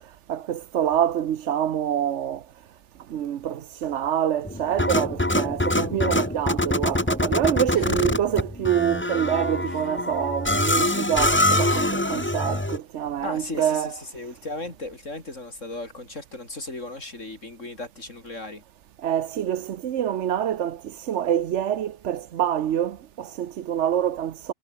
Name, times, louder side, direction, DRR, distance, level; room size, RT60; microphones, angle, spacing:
voice 1, 0.3-2.4 3.1-13.9 19.0-24.5, right 10 dB, 60° right, 1.0 m, -26 dB
sound 1, 4.4-12.8, left 1 dB, 10° left, 1.2 m, -24 dB
voice 2, 7.7-8.1 9.7-9.8 13.2-18.6, left 2 dB, 65° left, 4.7 m, -36 dB
omnidirectional pair, 1.4 m